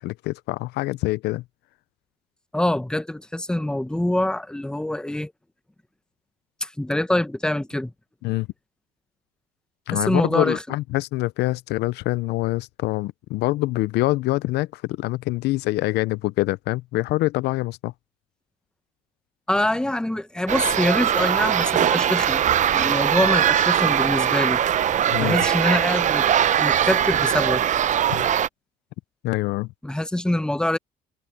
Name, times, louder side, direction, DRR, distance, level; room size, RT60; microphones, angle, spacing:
voice 1, 0.0-1.4 8.2-8.5 9.9-17.9 25.1-25.4 28.1-28.3 29.2-29.7, left 19 dB, 80° left, 0.5 m, -25 dB
voice 2, 2.5-5.3 6.6-7.9 9.9-10.6 19.5-22.4 22.7-24.6 25.2-26.3 26.6-27.6 29.8-30.8, left 1 dB, 5° left, 1.0 m, -24 dB
sound 1, 20.5-28.5, right 10 dB, 45° right, 0.7 m, -21 dB
cardioid pair, 110°, 17 cm